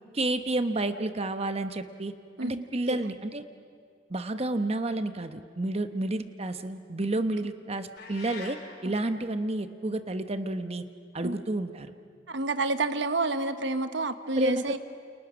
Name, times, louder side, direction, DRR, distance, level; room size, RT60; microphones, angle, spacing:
voice 1, 0.1-2.1 2.4-3.4 4.1-8.6 8.8-10.8 11.1-11.9 14.4-14.8, right 2 dB, 35° right, 9 dB, 1.0 m, -30 dB
voice 2, 2.4-3.0 8.8-8.9 11.2-11.4 12.3-14.8, right 3 dB, 70° right, 10 dB, 1.2 m, -29 dB
sound 1, 8.0-8.6, left 4 dB, 60° left, 3.9 m, -42 dB
29.5 x 28.5 x 6.2 m, 2.2 s
head